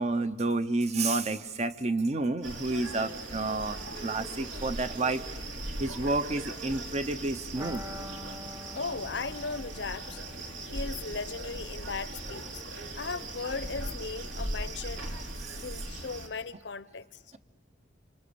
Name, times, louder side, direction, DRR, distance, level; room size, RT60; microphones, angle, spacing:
voice 1, 0.0-5.2 5.8-7.8, right 2 dB, 35° right, 0.8 m, -30 dB
sound 1, 2.4-16.3, right 1 dB, 80° right, 3.2 m, -39 dB
sound 2, 7.5-13.2 13.4-13.5 13.8-13.9, left 1 dB, 20° right, 1.2 m, -47 dB
voice 2, 8.7-10.2 10.7-12.6 13.0-15.1 15.6-17.1, left 4 dB, 65° left, 0.8 m, -37 dB
26.0 x 26.0 x 7.0 m
head